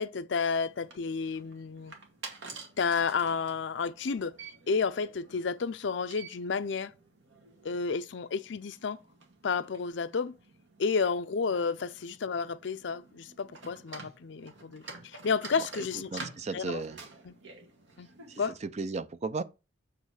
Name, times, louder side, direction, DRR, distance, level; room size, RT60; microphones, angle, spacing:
voice 1, 0.0-1.9 2.8-4.3 4.7-6.9 7.6-9.0 9.4-10.4 10.8-16.1 16.5-16.8 17.3-17.4 18.0-18.1 18.4-18.6, left 5 dB, 65° left, 0.5 m, -31 dB
sound 1, 0.5-18.5, right 3 dB, 75° right, 1.8 m, -50 dB
voice 2, 15.6-17.0 18.3-19.4, right 4 dB, 35° right, 0.4 m, -36 dB
8.3 x 3.1 x 6.3 m
head